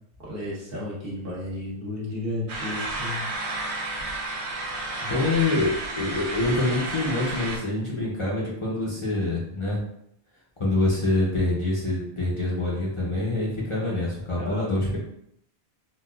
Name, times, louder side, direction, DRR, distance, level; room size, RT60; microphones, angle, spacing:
voice 1, 0.2-3.3 5.0-5.3 14.4-15.0, left 1 dB, 60° right, -6 dB, 1.2 m, -33 dB
sound 1, 2.5-7.6, right 2 dB, 80° right, 1.0 m, -31 dB
voice 2, 5.1-9.8 10.6-15.0, left 2 dB, 35° left, -5 dB, 0.6 m, -25 dB
4.0 x 2.2 x 2.3 m, 0.73 s
omnidirectional pair, 1.1 m